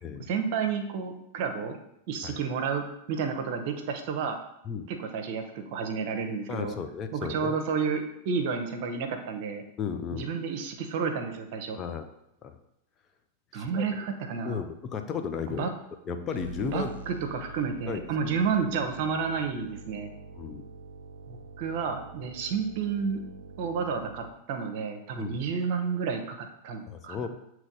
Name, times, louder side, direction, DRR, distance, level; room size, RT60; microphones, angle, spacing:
voice 1, 0.3-1.8 2.1-4.4 4.9-6.8 7.1-9.6 10.1-11.8 13.5-14.6 15.5-15.7 16.6-20.1 21.3-23.2 23.6-27.3, right 5 dB, 50° right, 6 dB, 0.8 m, -31 dB
voice 2, 6.5-7.5 9.8-10.3 11.8-12.1 12.4-12.6 13.5-13.8 14.4-15.7 16.1-17.0 17.9-18.0 20.4-20.6 25.2-25.4 26.9-27.3, left 6 dB, 25° left, 6 dB, 0.6 m, -34 dB
sound 1, 16.3-24.3, right 2 dB, 65° right, 0.5 m, -45 dB
8.3 x 3.1 x 3.9 m, 0.81 s
figure-of-eight pair, 90°, 0 cm